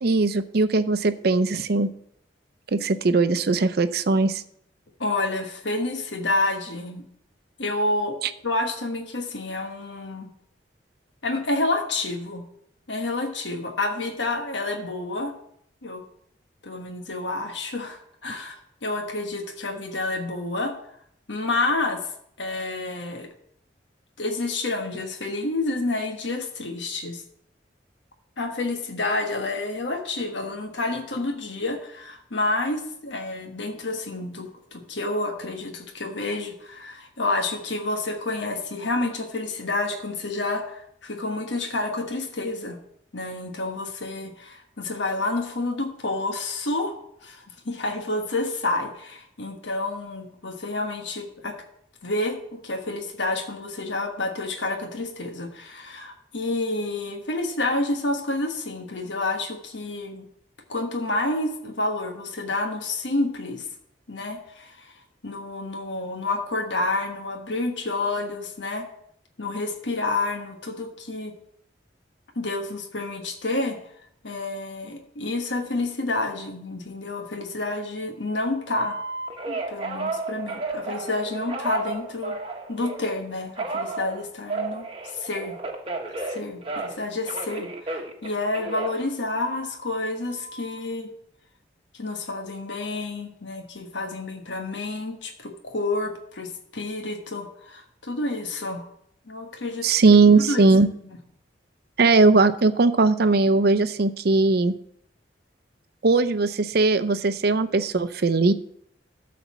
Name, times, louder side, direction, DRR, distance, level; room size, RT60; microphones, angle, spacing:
voice 1, 0.0-1.9 2.7-4.4 8.2-8.3 99.8-100.9 102.0-104.7 106.0-108.5, right 3 dB, 60° right, 12 dB, 0.6 m, -19 dB
voice 2, 5.0-7.0 7.6-8.2 8.4-10.3 11.2-12.4 12.9-15.3 15.8-16.0 16.6-20.7 21.3-22.0 22.4-23.3 24.2-27.2 28.4-42.8 43.1-47.0 47.2-51.6 52.0-60.3 60.7-63.6 64.1-64.9 65.2-68.9 69.4-71.3 72.3-73.8 74.2-79.0 79.5-82.4 82.7-84.9 85.1-85.6 86.3-91.1 91.9-98.8 99.3-100.7, left 2 dB, 80° left, 4 dB, 1.3 m, -29 dB
Telephone, 78.8-83.1 83.6-87.0 87.3-89.8 90.3-90.8, right 3 dB, 30° right, 1.2 m, -33 dB
12.5 x 4.2 x 7.0 m, 0.70 s
head